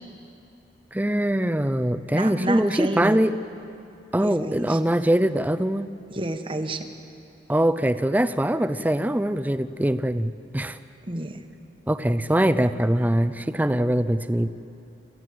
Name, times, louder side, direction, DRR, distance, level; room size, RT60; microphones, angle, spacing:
voice 1, 0.9-3.4 4.1-5.9 7.5-10.8 11.9-14.5, right 1 dB, 10° right, 11 dB, 0.5 m, -22 dB
voice 2, 2.1-3.2 4.2-4.8 6.1-6.9 11.1-11.4, right 1 dB, 30° right, 7 dB, 1.1 m, -29 dB
27.0 x 15.0 x 7.8 m, 2.7 s
head